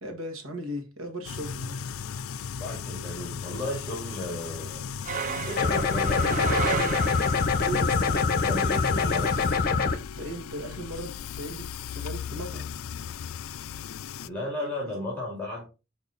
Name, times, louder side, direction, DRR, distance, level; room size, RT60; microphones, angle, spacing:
voice 1, 0.0-1.8 7.6-8.2 10.2-12.7 13.0-13.2 14.6-14.9, right 1 dB, 85° right, 1.9 m, -37 dB
sound 1, 1.2-14.3, left 7 dB, 90° left, 0.4 m, -37 dB
voice 2, 2.6-4.9 5.4-7.3 8.1-9.7 14.2-15.7, left 1 dB, 10° left, 2.4 m, -35 dB
sound 2, 5.0-7.7, right 7 dB, 40° right, 0.4 m, -33 dB
sound 3, 5.6-10.0, left 4 dB, 50° left, 0.9 m, -24 dB
7.1 x 4.7 x 4.0 m
head